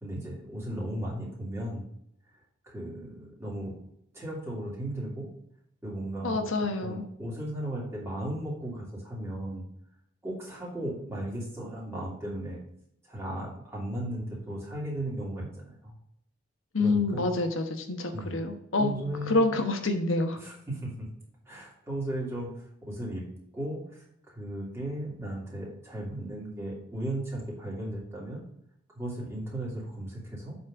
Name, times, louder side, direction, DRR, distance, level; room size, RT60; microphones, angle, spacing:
voice 1, 0.0-1.9 2.6-3.7 4.1-5.3 5.8-6.4 6.8-9.6 10.2-12.6 13.1-15.9 16.8-17.3 18.1-18.4 18.8-19.5 20.4-21.1 21.5-23.3 23.5-28.4 28.9-30.6, right 1 dB, 15° right, -5 dB, 2.8 m, -36 dB
voice 2, 6.2-7.0 16.7-20.4, left 2 dB, 85° left, 5 dB, 1.1 m, -27 dB
7.8 x 4.2 x 5.0 m, 0.75 s
head